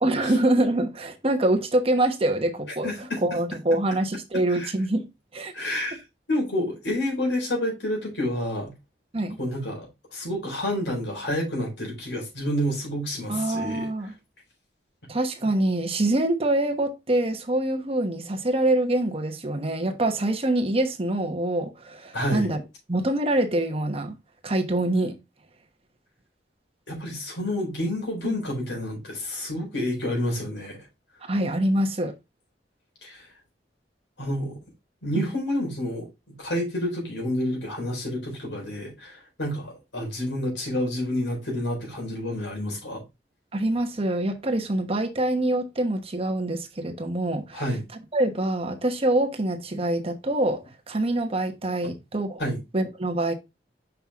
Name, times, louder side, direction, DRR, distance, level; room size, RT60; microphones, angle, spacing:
voice 1, 0.0-2.9 3.2-5.1 5.3-5.5 9.1-9.4 13.3-14.1 15.1-22.6 22.9-24.2 24.4-25.2 28.2-28.4 31.3-32.1 35.1-35.3 43.5-47.6 48.1-52.4 52.7-53.3, right 1 dB, 35° right, 1.2 m, -25 dB
voice 2, 2.8-3.2 4.5-4.7 5.5-8.7 9.4-13.9 22.1-22.5 26.9-30.8 33.0-33.3 34.2-34.6 35.0-43.0 47.5-47.8 51.8-51.9 52.4-52.6, left 1 dB, 90° left, 4.2 m, -29 dB
5.9 x 5.6 x 3.6 m
head